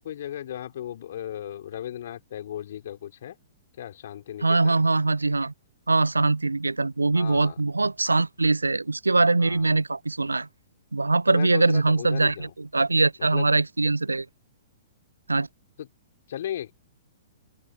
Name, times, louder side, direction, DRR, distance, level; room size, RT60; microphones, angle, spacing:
voice 1, 0.0-3.4 3.8-4.7 7.1-7.6 9.4-9.7 11.3-12.5 13.2-13.5 15.8-15.9 16.3-16.7, left 11 dB, 55° left, 3.6 m, -36 dB
voice 2, 4.4-5.5 5.9-10.5 10.9-14.3 15.3-15.5, right 3 dB, 85° right, 0.3 m, -22 dB
open air
figure-of-eight pair, 115°, 0 cm